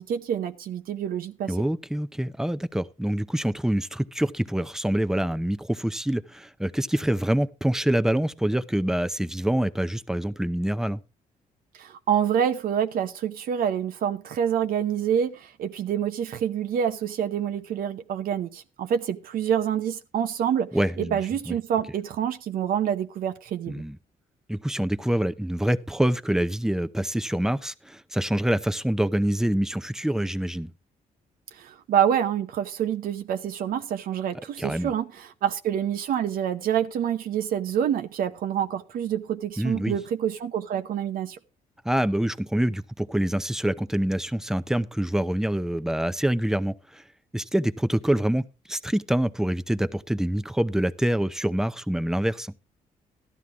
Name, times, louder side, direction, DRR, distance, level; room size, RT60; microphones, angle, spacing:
voice 1, 0.0-1.5 11.8-20.7 21.0-23.8 31.6-41.4, right 9 dB, 70° right, 0.8 m, -27 dB
voice 2, 1.5-11.0 20.7-21.2 21.5-21.6 23.7-24.0 24.5-30.7 34.6-34.9 39.6-40.0 41.8-47.0 47.3-52.5, right 1 dB, 5° right, 0.6 m, -26 dB
13.5 x 11.0 x 3.6 m
cardioid pair, 110°, 15 cm